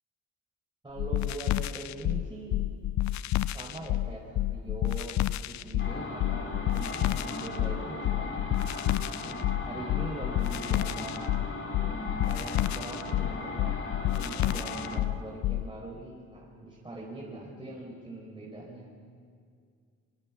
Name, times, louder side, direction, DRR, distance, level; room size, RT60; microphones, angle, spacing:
voice 1, 0.8-2.6 3.3-5.2 5.4-8.4 9.6-11.4 12.2-13.8 14.0-18.9, right 2 dB, 15° right, -4 dB, 4.8 m, -42 dB
sound 1, 1.0-15.7, left 14 dB, 65° left, 0.6 m, -29 dB
sound 2, 5.8-15.0, left 2 dB, 40° left, 3.6 m, -37 dB
24.5 x 23.5 x 6.2 m, 2.2 s
cardioid pair, 90°, 30 cm